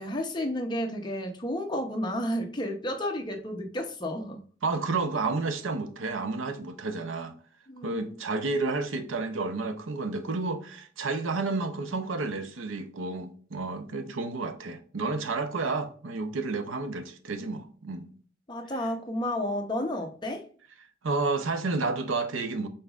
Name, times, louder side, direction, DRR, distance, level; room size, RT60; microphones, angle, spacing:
voice 1, 0.0-4.4 7.7-8.1 18.5-20.4, left 1 dB, 20° left, 0.7 m, -31 dB
voice 2, 4.6-7.3 7.8-18.1 21.0-22.7, right 3 dB, 80° right, 0.6 m, -31 dB
5.5 x 3.9 x 2.4 m
head